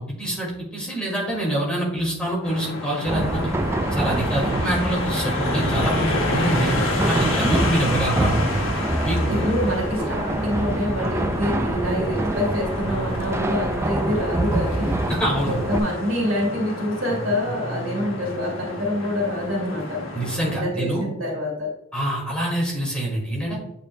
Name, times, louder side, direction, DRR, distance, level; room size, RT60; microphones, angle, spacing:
voice 1, 0.0-3.5 3.9-6.7 7.1-8.4 9.0-9.5 15.0-15.6 20.1-21.1 21.9-23.6, right 1 dB, 5° left, -4 dB, 2.0 m, -25 dB
sound 1, 2.4-20.5, left 2 dB, 70° left, 1.2 m, -30 dB
sound 2, 3.1-15.8, right 1 dB, 15° right, 0.3 m, -25 dB
voice 2, 9.3-14.9 15.5-20.0 20.5-21.7, left 1 dB, 75° right, -1 dB, 2.4 m, -26 dB
8.6 x 5.1 x 2.2 m, 0.84 s
head